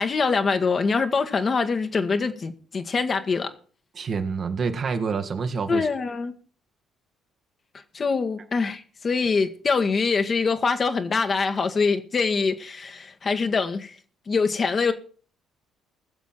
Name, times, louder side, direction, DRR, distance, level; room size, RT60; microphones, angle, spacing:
voice 1, 0.0-3.5 5.7-6.3 7.9-13.9 14.3-14.9, left 4 dB, 40° left, 1.6 m, -24 dB
voice 2, 3.9-5.9, right 5 dB, 50° right, 1.7 m, -27 dB
21.0 x 7.2 x 4.4 m
hypercardioid pair, 50°, 0 cm